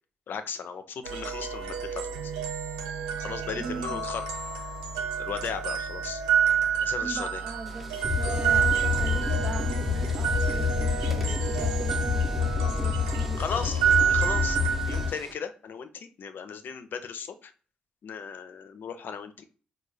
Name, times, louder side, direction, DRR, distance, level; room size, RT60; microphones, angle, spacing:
voice 1, 0.3-2.3 3.2-4.3 5.2-6.2 6.8-7.4 13.4-17.5 18.0-19.5, left 6 dB, 60° left, 0.5 m, -36 dB
sound 1, 1.0-15.1, right 7 dB, 90° right, 0.4 m, -29 dB
voice 2, 3.6-4.0 7.0-13.4, right 4 dB, 40° right, 0.6 m, -39 dB
sound 2, 7.7-15.3, equal, 5° right, 0.8 m, -47 dB
sound 3, 8.0-15.1, left 6 dB, 25° left, 0.9 m, -28 dB
4.3 x 2.2 x 3.2 m
hypercardioid pair, 40°, 4 cm